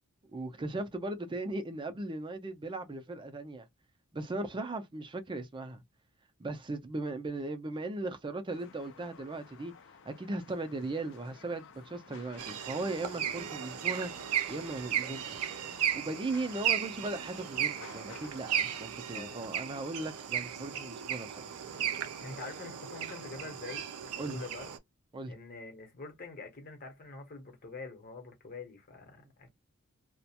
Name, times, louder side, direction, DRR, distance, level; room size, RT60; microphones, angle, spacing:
voice 1, 0.3-3.7 4.1-5.8 6.4-9.7 10.1-14.1 14.5-15.4 15.9-21.5 24.2-24.4 25.1-25.3, right 2 dB, 20° right, 0.4 m, -38 dB
sound 1, 8.5-18.8, left 6 dB, 60° left, 0.5 m, -54 dB
sound 2, 12.4-24.8, right 9 dB, 90° right, 0.5 m, -35 dB
voice 2, 19.1-19.4 22.2-23.9 24.2-24.7 25.3-29.5, left 3 dB, 45° left, 0.9 m, -45 dB
2.4 x 2.1 x 2.8 m
head